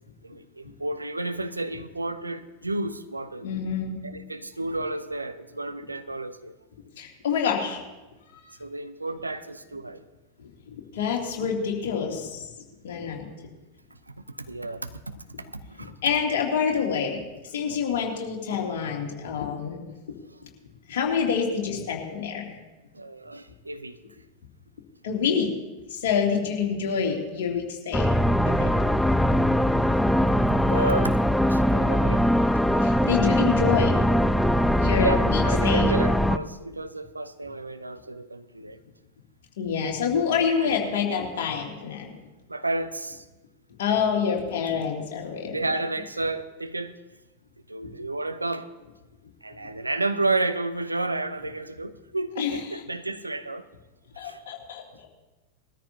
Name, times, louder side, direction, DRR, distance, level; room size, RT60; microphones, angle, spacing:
voice 1, 0.2-3.5 4.0-6.6 8.6-10.0 14.3-15.9 22.9-24.0 30.7-31.2 31.5-32.3 35.0-38.8 40.6-40.8 42.5-43.2 45.5-47.0 47.7-48.7 49.4-53.7 54.2-54.4, right 2 dB, 80° right, 11 dB, 0.7 m, -31 dB
voice 2, 3.4-4.0 7.0-7.8 10.4-12.5 12.8-13.3 16.0-17.2 17.5-19.8 20.9-22.6 25.0-25.5 25.9-28.1 28.5-28.8 32.8-34.0 34.8-36.3 39.6-42.1 43.8-45.6 52.4-52.8 54.2-55.1, left 6 dB, 55° left, 0 dB, 2.6 m, -27 dB
sound 1, 27.9-36.4, equal, ahead, 0.4 m, -21 dB
21.0 x 13.5 x 2.8 m, 1.1 s
figure-of-eight pair, 90°, 0 cm